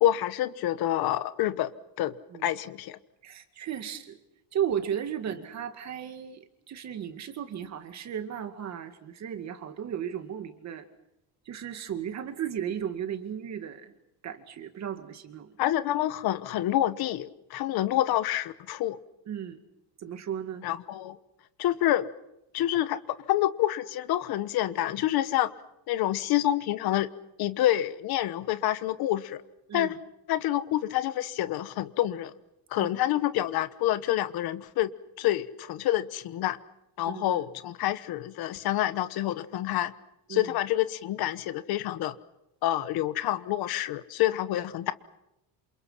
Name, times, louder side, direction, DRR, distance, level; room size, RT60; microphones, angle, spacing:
voice 1, 0.0-1.7 2.0-2.1 2.4-3.0 15.6-19.0 20.6-21.2 21.6-22.0 22.5-25.5 25.9-27.1 27.4-29.4 29.7-30.0 30.3-32.3 32.7-34.9 35.2-36.6 37.0-39.9 40.3-42.1 42.6-44.9, left 13 dB, 55° left, 14 dB, 1.2 m, -27 dB
voice 2, 3.2-4.2 4.5-6.4 6.7-10.8 11.5-13.9 14.2-15.5 19.3-19.6 20.0-20.7 29.7-29.9 32.8-32.9 37.1-37.4 40.3-40.5, right 9 dB, 35° right, 7 dB, 2.2 m, -35 dB
28.0 x 28.0 x 5.8 m, 0.85 s
cardioid pair, 170°, 45 cm